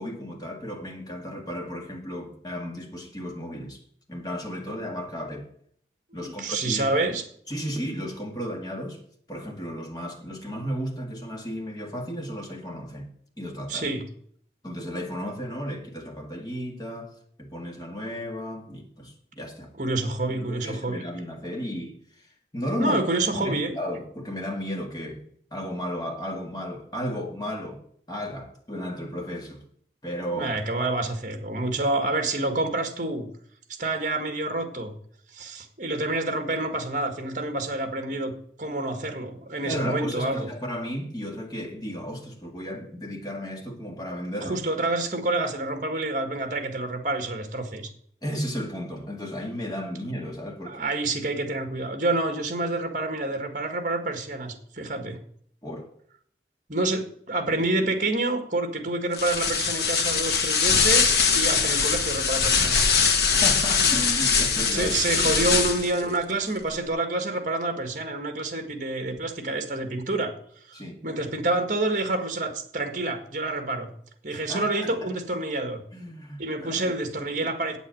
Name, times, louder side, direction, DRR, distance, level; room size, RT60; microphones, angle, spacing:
voice 1, 0.0-3.8 4.1-5.5 6.1-6.9 7.5-9.0 9.3-13.1 13.4-13.9 14.6-19.7 20.3-22.3 22.5-23.0 23.3-25.2 25.5-27.8 28.1-29.6 30.0-30.6 39.6-44.6 48.2-50.9 55.6-55.9 63.2-65.5 70.7-71.0 74.3-75.1 75.9-77.0 77.4-77.5, equal, 25° left, 2.1 m, -34 dB
voice 2, 6.1-7.2 13.7-14.0 19.8-21.0 22.8-23.8 30.3-33.3 33.8-35.0 35.3-38.3 38.6-40.5 44.4-47.9 50.6-55.2 56.7-62.9 64.7-70.3 70.7-73.9 74.2-75.8 76.4-77.8, right 2 dB, 45° right, 1.8 m, -28 dB
sound 1, 59.1-66.0, left 5 dB, 70° left, 1.3 m, -22 dB
8.6 x 8.1 x 7.8 m
head